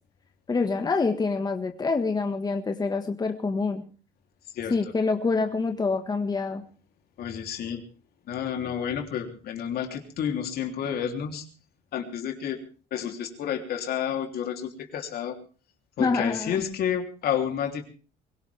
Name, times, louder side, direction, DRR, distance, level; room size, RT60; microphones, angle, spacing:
voice 1, 0.5-3.8 4.7-6.6 16.0-16.5, left 4 dB, 25° left, 5 dB, 1.7 m, -26 dB
voice 2, 7.2-7.8 8.3-11.5 11.9-12.6 12.9-15.4 16.0-17.8, left 8 dB, 65° left, 4 dB, 3.4 m, -30 dB
23.0 x 17.0 x 3.5 m, 0.39 s
cardioid pair, 110°, 17 cm